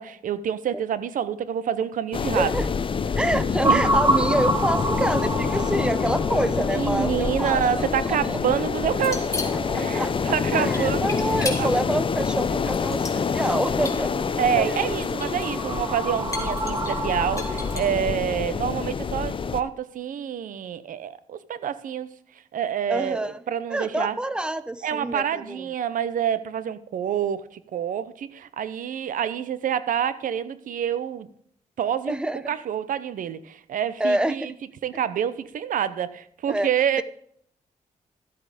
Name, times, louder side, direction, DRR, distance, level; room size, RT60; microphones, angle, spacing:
voice 1, 0.0-2.5 3.6-3.8 6.7-9.3 9.7-11.1 11.6-11.7 14.4-22.1 22.5-24.2 24.8-31.3 31.8-32.2 32.5-34.5 34.8-37.0, right 9 dB, 75° right, 0.8 m, -27 dB
sound 1, 2.1-19.6, left 5 dB, 40° left, 0.7 m, -27 dB
voice 2, 2.3-2.7 3.2-8.6 9.5-14.1 14.6-15.0 22.9-23.4 23.7-25.7 32.1-32.4 34.0-34.5 36.5-36.7, right 1 dB, 5° right, 0.8 m, -27 dB
sound 2, 3.6-17.9, right 1 dB, 20° right, 1.5 m, -30 dB
sound 3, 8.9-9.8 10.7-11.8 12.7-13.6 13.9-14.0 14.9-15.5 15.7-15.8 16.3-18.0, left 3 dB, 25° left, 2.5 m, -33 dB
13.0 x 8.5 x 5.1 m
cardioid pair, 105°, 14 cm